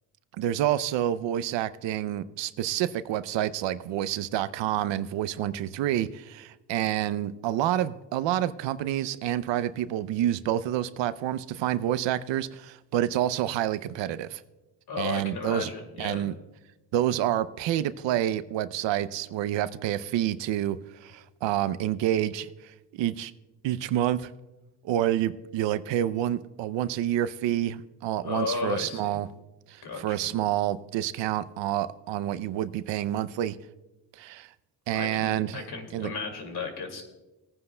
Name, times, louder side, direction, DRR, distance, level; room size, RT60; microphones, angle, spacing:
voice 1, 0.4-14.4 15.0-15.7 16.0-16.3 16.9-23.3 23.6-24.3 24.8-29.3 29.7-33.6 34.2-34.5 34.9-35.6 35.9-36.1, right 12 dB, 90° right, 15 dB, 0.6 m, -28 dB
voice 2, 14.9-16.3 28.2-29.2 29.8-30.3 34.9-37.0, left 4 dB, 65° left, 4 dB, 2.3 m, -34 dB
20.5 x 9.6 x 2.2 m, 1.0 s
cardioid pair, 100°, 42 cm